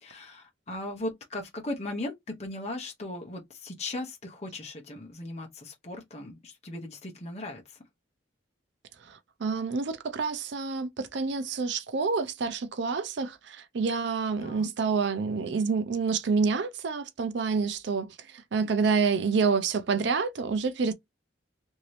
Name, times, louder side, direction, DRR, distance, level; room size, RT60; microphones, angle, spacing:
voice 1, 0.0-7.8 14.4-14.7, left 2 dB, 35° left, 0.8 m, -38 dB
voice 2, 9.0-20.9, right 5 dB, 60° right, 0.4 m, -28 dB
3.0 x 2.7 x 3.0 m
head